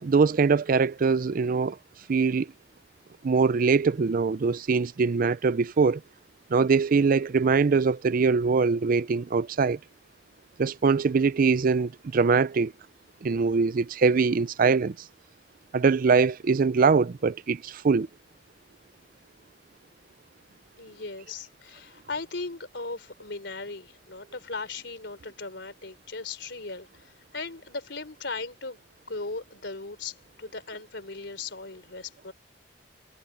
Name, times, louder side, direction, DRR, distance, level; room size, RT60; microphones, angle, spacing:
voice 1, 0.0-1.8 2.1-2.5 3.2-6.0 6.5-9.8 10.6-12.7 13.2-15.0 15.7-18.1, right 5 dB, 50° right, 0.4 m, -23 dB
voice 2, 20.8-28.8 29.1-32.3, left 3 dB, 70° left, 4.0 m, -38 dB
head